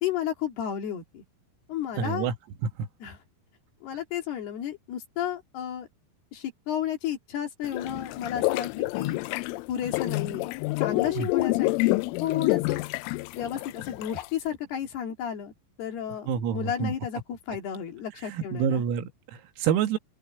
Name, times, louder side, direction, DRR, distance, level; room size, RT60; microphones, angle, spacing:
voice 1, 0.0-1.2 1.7-2.3 3.0-3.2 3.8-5.9 6.3-9.2 9.7-10.5 10.8-12.8 13.4-15.5 15.8-18.8, left 9 dB, 55° left, 3.8 m, -32 dB
voice 2, 2.0-2.3 2.8-2.9 11.2-11.3 16.3-16.9 18.3-20.0, right 8 dB, 90° right, 4.5 m, -27 dB
sound 1, 7.6-14.4, left 24 dB, 85° left, 3.0 m, -28 dB
open air
omnidirectional pair, 6.0 m